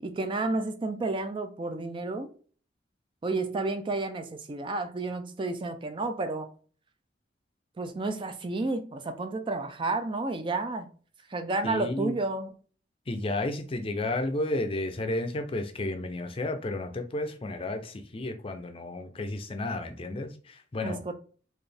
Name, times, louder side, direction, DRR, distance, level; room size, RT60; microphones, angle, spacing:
voice 1, 0.0-2.3 3.2-6.5 7.8-10.9 11.3-12.5 20.8-21.1, right 2 dB, 30° right, 0.4 m, -31 dB
voice 2, 11.6-12.2 13.1-21.0, left 2 dB, 30° left, 0.5 m, -32 dB
4.1 x 2.5 x 3.3 m
head